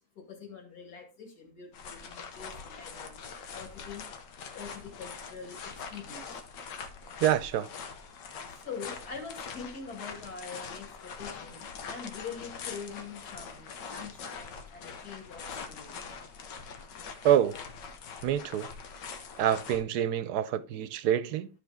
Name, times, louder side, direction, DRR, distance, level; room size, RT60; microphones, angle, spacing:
voice 1, 0.2-3.2 3.5-4.1 4.5-6.2 8.1-8.2 8.5-16.0, left 5 dB, 65° left, 2.6 m, -44 dB
sound 1, 1.7-19.8, left 5 dB, 85° left, 1.7 m, -43 dB
voice 2, 7.2-7.7 17.2-17.5 18.2-18.7 19.4-21.5, right 10 dB, 75° right, 1.1 m, -26 dB
12.5 x 5.2 x 3.5 m
omnidirectional pair, 1.8 m